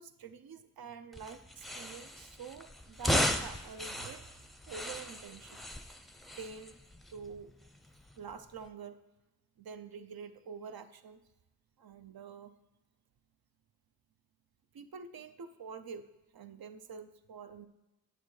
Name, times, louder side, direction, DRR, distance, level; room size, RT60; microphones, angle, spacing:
voice 1, 0.0-4.3 4.7-5.6 6.3-6.8 7.1-7.5 8.2-9.0 9.6-11.2 11.8-12.5 14.7-16.0 16.3-17.7, right 5 dB, 75° right, 10 dB, 0.6 m, -47 dB
sound 1, 1.1-8.7, left 1 dB, ahead, 0.5 m, -37 dB
8.8 x 7.5 x 3.2 m, 1.1 s
cardioid pair, 45°, 36 cm